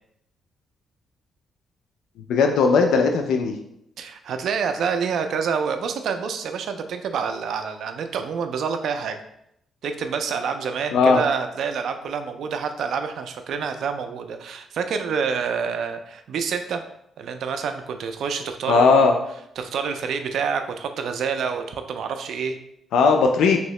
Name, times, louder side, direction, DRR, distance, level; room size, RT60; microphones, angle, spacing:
voice 1, 2.3-3.5 10.9-11.2 18.7-19.1 22.9-23.6, left 4 dB, 90° left, 4 dB, 0.3 m, -17 dB
voice 2, 4.0-9.2 9.8-16.8 17.2-18.9 19.6-22.6, right 6 dB, 65° right, 7 dB, 0.3 m, -27 dB
2.9 x 2.7 x 3.1 m, 0.76 s
cardioid pair, 150°, 0 cm